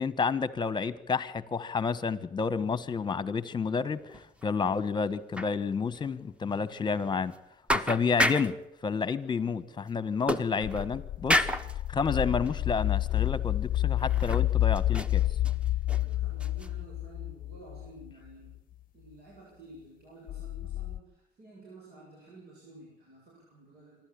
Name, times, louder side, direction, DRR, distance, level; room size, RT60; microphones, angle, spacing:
voice 1, 0.0-4.0 4.4-7.3 7.7-8.5 8.8-11.5 11.9-15.2, left 5 dB, 25° left, 16 dB, 1.2 m, -30 dB
sound 1, 4.1-4.5 4.7-4.8 5.3-5.5 5.9-6.1 6.5-6.6 7.3-7.4 7.7-8.6 10.3-10.9 11.3-11.7 12.4-12.6 13.1-13.2 14.0-14.5 14.8-16.0 16.4-16.7, left 1 dB, 5° right, 1.2 m, -30 dB
voice 2, 9.5-9.8 15.9-18.6 18.9-24.0, right 2 dB, 70° right, -3 dB, 7.6 m, -52 dB
sound 2, 10.6-18.1 20.3-21.0, left 14 dB, 55° left, 0.7 m, -29 dB
27.0 x 12.5 x 8.6 m, 0.83 s
cardioid pair, 110°, 17 cm